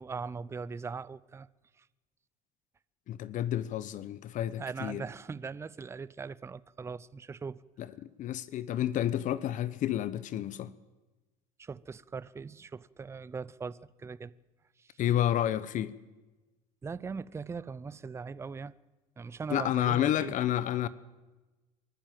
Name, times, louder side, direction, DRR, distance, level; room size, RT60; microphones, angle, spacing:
voice 1, 0.0-1.5 1.8-1.9 4.6-7.6 11.6-14.3 14.8-14.9 16.8-18.7 19.2-20.3, right 5 dB, 15° right, 0.6 m, -40 dB
voice 2, 3.1-5.0 7.8-10.7 15.0-15.9 19.5-20.9, left 12 dB, 50° left, 1.0 m, -30 dB
24.0 x 14.0 x 7.6 m
supercardioid pair, 115°, 17 cm